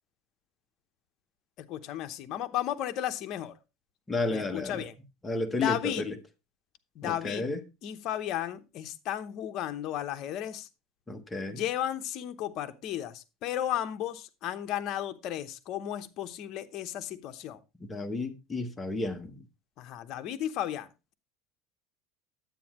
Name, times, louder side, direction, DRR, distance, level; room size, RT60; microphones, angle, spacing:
voice 1, 1.6-3.5 4.3-4.9 5.5-6.1 6.9-7.5 7.8-10.7 11.5-17.6 19.8-20.9, left 11 dB, 40° left, 0.8 m, -34 dB
voice 2, 4.1-4.8 5.2-6.2 7.0-7.6 11.1-11.6 17.9-19.4, left 3 dB, 10° left, 0.8 m, -32 dB
9.3 x 8.7 x 3.0 m
cardioid pair, 170°, 0 cm